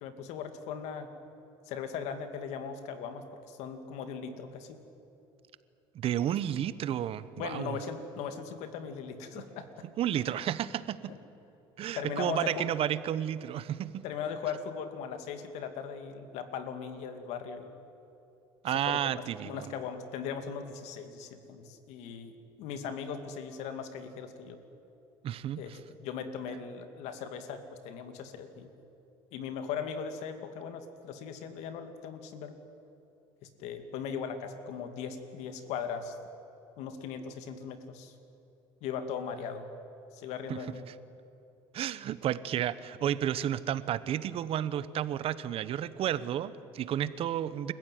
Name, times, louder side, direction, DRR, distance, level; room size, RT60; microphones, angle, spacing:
voice 1, 0.0-1.1 1.7-4.7 7.4-9.7 11.1-11.2 11.9-12.7 14.0-17.7 18.9-24.6 25.6-28.7 29.3-32.6 33.4-36.2 36.8-38.1 38.8-39.7 40.1-40.8, left 6 dB, 75° left, 8 dB, 2.4 m, -39 dB
voice 2, 5.9-7.8 9.3-9.4 10.0-11.1 11.8-14.0 18.6-19.6 25.2-25.8 40.5-40.6 41.7-47.7, right 10 dB, 55° right, 15 dB, 1.0 m, -32 dB
28.5 x 15.0 x 9.3 m, 2.9 s
supercardioid pair, 100°, 12 cm